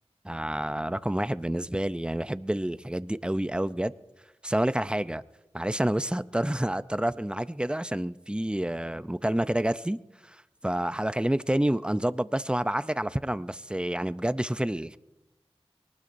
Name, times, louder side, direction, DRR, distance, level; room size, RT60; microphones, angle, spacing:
voice 1, 0.2-3.9 4.4-5.2 5.5-10.0 10.2-15.0, right 1 dB, 10° right, 0.5 m, -28 dB
23.0 x 19.0 x 2.6 m
wide cardioid pair, 50°, 11 cm